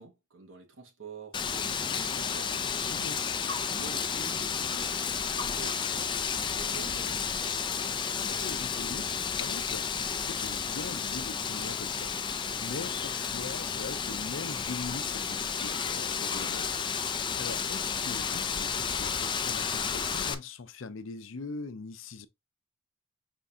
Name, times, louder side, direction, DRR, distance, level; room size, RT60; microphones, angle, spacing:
voice 1, 0.0-2.9 3.7-7.9, right 4 dB, 70° right, 1.3 m, -48 dB
Wind, 1.3-20.3, left 6 dB, 25° left, 0.4 m, -32 dB
voice 2, 2.9-3.2 8.2-12.1 12.6-22.3, left 4 dB, 75° left, 0.6 m, -42 dB
5.1 x 2.7 x 3.5 m
head